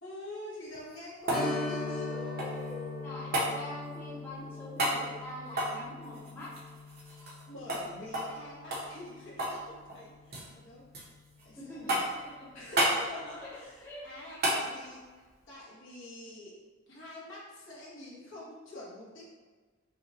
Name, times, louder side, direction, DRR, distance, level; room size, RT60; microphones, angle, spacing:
voice 1, 0.0-3.0 7.1-10.8 11.4-12.0 12.5-15.0 15.5-16.5 16.9-19.2, left 1 dB, 70° left, -7 dB, 1.4 m, -46 dB
sound 1, 0.7-2.7 3.3-3.5 4.8-5.0 5.5-7.4 7.7-7.8 8.1-8.4 8.7-9.6 9.9-10.5 10.9-11.5 11.9-12.3 12.8-13.0 14.4-14.6 17.0-17.1, right 1 dB, 45° right, 1.0 m, -31 dB
Strum, 1.3-10.5 10.8-10.9 13.5-13.6 14.1-14.2, left 2 dB, 45° left, 0.7 m, -40 dB
voice 2, 3.0-6.5 11.6-12.0 12.4-12.6 13.4-14.6, left 1 dB, 10° left, -9 dB, 0.9 m, -45 dB
5.5 x 2.4 x 2.9 m, 1.4 s
head